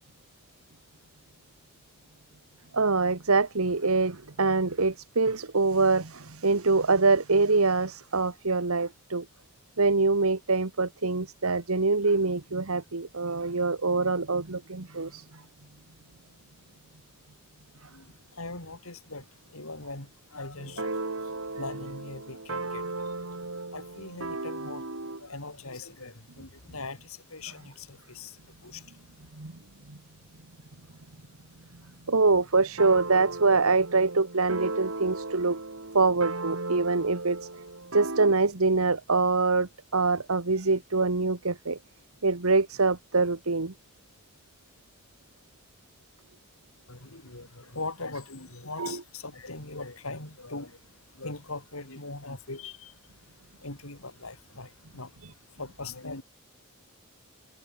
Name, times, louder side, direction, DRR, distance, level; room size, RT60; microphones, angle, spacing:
voice 1, 2.7-9.2 9.8-15.3 29.4-29.5 29.9-30.0 32.1-35.6 35.9-37.4 37.9-41.8 42.2-43.7 48.8-49.0 55.2-55.3, right 3 dB, 85° right, 1.6 m, -24 dB
voice 2, 17.9-23.1 23.7-24.9 25.1-28.9 46.9-50.8 51.1-53.0 53.6-55.2 55.5-56.2, left 3 dB, 80° left, 6.5 m, -41 dB
sound 1, 20.6-25.3 32.8-38.3, right 3 dB, 65° right, 2.5 m, -36 dB
head